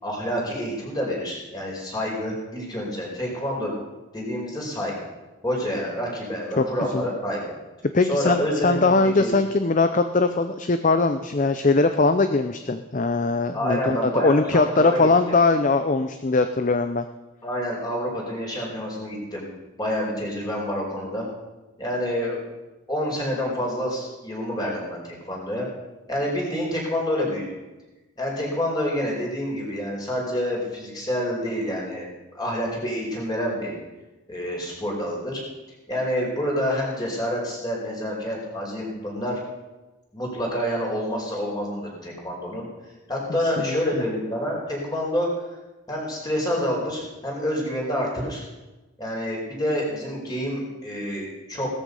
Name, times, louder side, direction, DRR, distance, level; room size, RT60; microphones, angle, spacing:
voice 1, 0.0-3.7 4.1-4.9 5.4-7.4 8.0-9.3 13.5-15.1 17.4-19.4 19.8-21.2 21.8-22.4 22.9-25.7 26.1-27.4 28.2-32.1 32.3-33.7 34.3-35.4 35.9-39.4 40.1-42.7 43.1-45.3 45.9-48.4 49.0-51.7, equal, 20° left, -2 dB, 4.9 m, -28 dB
voice 2, 7.9-17.0 43.6-43.8, left 3 dB, 40° left, 9 dB, 0.6 m, -21 dB
17.5 x 14.0 x 5.4 m, 1.1 s
head